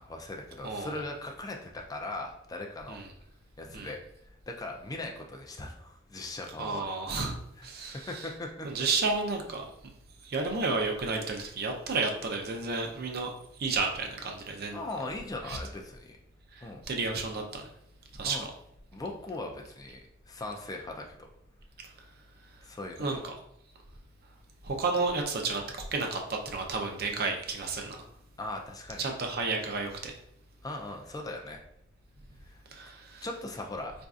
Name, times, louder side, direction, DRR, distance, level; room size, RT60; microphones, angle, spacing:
voice 1, 0.0-3.0 3.6-4.0 4.5-6.8 7.8-8.8 14.7-16.2 16.6-16.8 18.2-18.5 18.9-21.3 22.6-23.3 28.4-29.1 30.6-31.6 32.4-32.6 33.2-33.9, left 2 dB, 20° left, 2 dB, 0.3 m, -39 dB
voice 2, 0.6-0.9 2.9-3.1 3.7-3.9 6.6-7.4 7.6-8.3 8.6-9.6 10.2-13.3 13.6-14.8 15.5-15.6 16.5-17.7 18.2-18.4 23.0-23.3 24.6-25.6 25.9-28.0 29.0-30.1 32.7-33.2, right 3 dB, 50° right, 2 dB, 0.5 m, -31 dB
4.1 x 2.6 x 2.3 m, 0.77 s
head